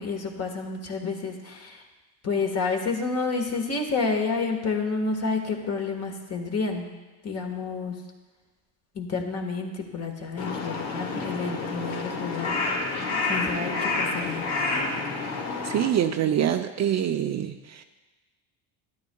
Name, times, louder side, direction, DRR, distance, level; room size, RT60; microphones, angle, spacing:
voice 1, 0.0-1.8 2.2-6.9 7.2-8.0 8.9-12.7 13.3-14.9, left 4 dB, 40° left, 2 dB, 1.6 m, -29 dB
Crow, 10.4-15.9, left 3 dB, 70° left, 1.7 m, -29 dB
voice 2, 15.6-17.8, right 10 dB, 45° right, 7 dB, 0.5 m, -25 dB
12.5 x 9.6 x 2.3 m, 1.2 s
supercardioid pair, 85°, 40 cm